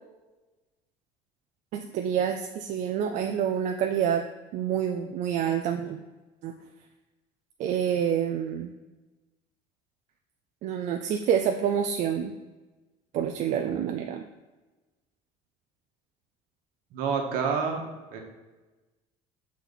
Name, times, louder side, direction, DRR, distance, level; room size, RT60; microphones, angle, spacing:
voice 1, 1.7-4.2 4.5-6.0 6.4-6.5 7.6-8.7 10.6-12.3 13.1-14.2, right 8 dB, 60° right, 4 dB, 0.4 m, -27 dB
voice 2, 16.9-17.8 18.1-18.2, right 5 dB, 75° right, 2 dB, 1.3 m, -28 dB
6.1 x 4.2 x 4.0 m, 1.2 s
cardioid pair, 120°, 14 cm